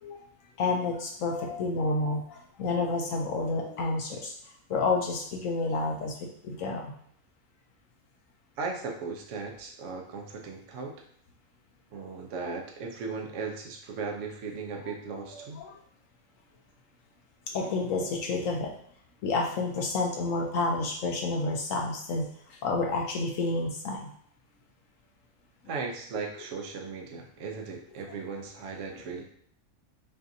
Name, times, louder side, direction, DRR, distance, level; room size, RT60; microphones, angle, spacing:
voice 1, 0.6-4.3 4.7-6.9 15.3-15.8 17.5-18.7 19.2-24.1, left 3 dB, 70° left, 0 dB, 1.0 m, -30 dB
voice 2, 8.6-10.9 11.9-15.6 25.7-29.2, right 4 dB, 65° right, 1 dB, 1.0 m, -37 dB
5.8 x 2.5 x 2.6 m, 0.65 s
omnidirectional pair, 1.5 m